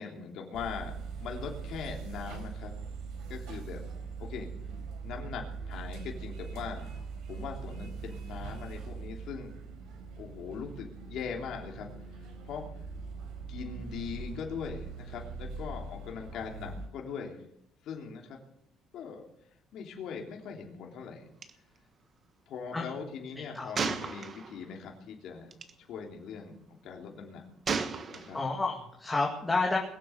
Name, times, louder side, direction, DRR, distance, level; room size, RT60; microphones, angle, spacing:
voice 1, 0.0-2.7 3.3-3.8 4.2-4.5 5.0-6.9 7.3-9.6 10.2-11.9 12.4-12.7 13.5-17.4 17.8-18.4 18.9-19.2 19.7-21.2 22.5-25.5 25.8-27.4 28.1-28.4, left 6 dB, 60° left, 1 dB, 3.2 m, -41 dB
sound 1, 0.5-16.9, right 4 dB, 85° right, 4.1 m, -42 dB
Gunshot gunfire, 21.4-21.5 21.8-21.9 23.7-24.7 25.5-25.7 27.7-28.6, right 5 dB, 35° right, 1.3 m, -34 dB
voice 2, 23.4-23.7 28.3-29.8, left 3 dB, 15° left, -1 dB, 2.2 m, -30 dB
22.0 x 7.7 x 7.9 m, 0.75 s
cardioid pair, 145°, 0 cm